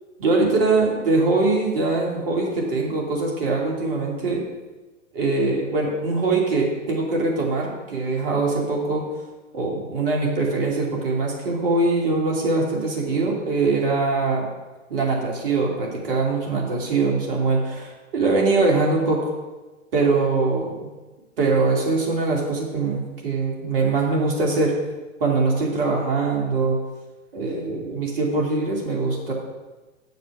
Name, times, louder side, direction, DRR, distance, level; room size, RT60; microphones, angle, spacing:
voice 1, 0.2-4.4 5.1-9.1 9.5-14.5 14.9-19.3 19.9-20.9 21.4-24.7 25.2-26.8 27.3-29.3, right 3 dB, 45° right, -1 dB, 2.7 m, -22 dB
7.6 x 6.7 x 6.2 m, 1.2 s
figure-of-eight pair, 115°, 38 cm